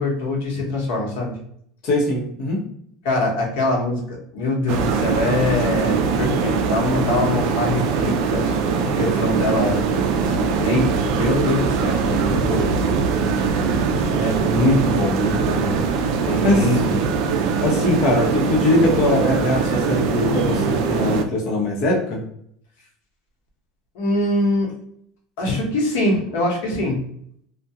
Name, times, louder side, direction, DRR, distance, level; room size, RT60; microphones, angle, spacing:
voice 1, 0.0-1.4 3.0-9.8 10.2-12.8 14.1-15.8 16.3-17.0 23.9-24.7 25.4-27.0, left 2 dB, 80° left, 0 dB, 0.9 m, -23 dB
voice 2, 1.8-2.6 16.4-16.7 17.5-22.2, left 1 dB, 50° left, -2 dB, 0.8 m, -21 dB
sound 1, 4.7-21.2, right 5 dB, 55° right, 0.3 m, -21 dB
2.3 x 2.2 x 2.7 m, 0.67 s
cardioid pair, 175°, 0 cm